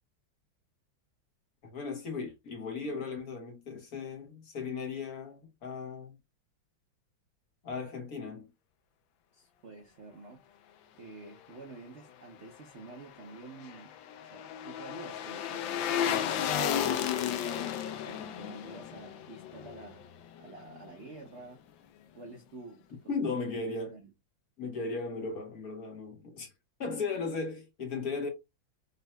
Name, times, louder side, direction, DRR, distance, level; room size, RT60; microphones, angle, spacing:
voice 1, 1.6-6.2 7.6-8.5 23.1-24.0 24.6-26.5 26.8-28.3, left 4 dB, 55° left, 1.4 m, -36 dB
voice 2, 9.3-10.5 10.9-13.9 14.2-17.7 18.0-20.1 20.4-21.6 22.1-23.5 23.9-24.1, right 3 dB, 65° right, 0.7 m, -49 dB
sound 1, 13.2-20.4 20.7-20.8, left 9 dB, 80° left, 1.3 m, -33 dB
5.3 x 2.7 x 2.2 m
omnidirectional pair, 2.2 m